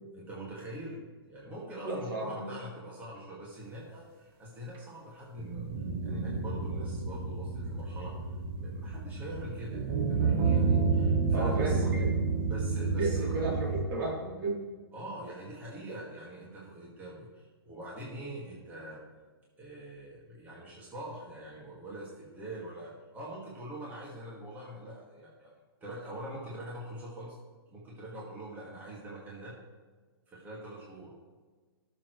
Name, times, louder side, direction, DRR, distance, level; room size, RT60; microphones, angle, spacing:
voice 1, 0.1-1.0 1.3-5.7 6.0-8.2 8.5-11.8 12.5-13.3 14.9-19.0 19.6-27.4 27.7-29.6 30.3-31.2, right 1 dB, 15° right, -5 dB, 2.3 m, -44 dB
voice 2, 1.8-2.5 11.3-12.3 13.0-14.6, right 2 dB, 55° right, -3 dB, 3.9 m, -33 dB
sound 1, 5.4-13.8, right 4 dB, 30° right, 1.2 m, -30 dB
19.5 x 7.2 x 3.3 m, 1.4 s
hypercardioid pair, 155°, 13 cm